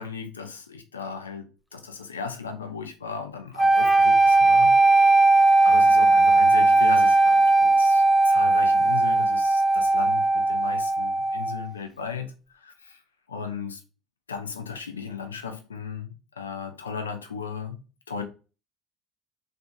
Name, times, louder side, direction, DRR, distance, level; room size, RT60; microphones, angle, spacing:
voice 1, 0.0-5.3 5.6-13.0 13.3-13.8 14.3-17.8 18.1-18.2, left 6 dB, 80° left, 0.4 m, -36 dB
sound 1, 3.6-11.7, right 2 dB, 5° left, 0.5 m, -18 dB
3.5 x 2.6 x 2.4 m
figure-of-eight pair, 60°, 0 cm